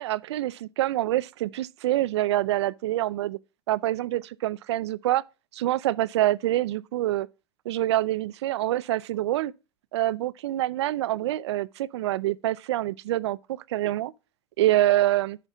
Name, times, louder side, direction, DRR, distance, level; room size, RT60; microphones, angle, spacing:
voice 1, 0.0-3.4 3.7-5.2 5.5-7.3 7.7-9.5 9.9-13.4 13.7-14.1 14.6-15.4, right 14 dB, 75° right, 0.4 m, -26 dB
10.0 x 5.4 x 3.5 m
hypercardioid pair, 95°, 14 cm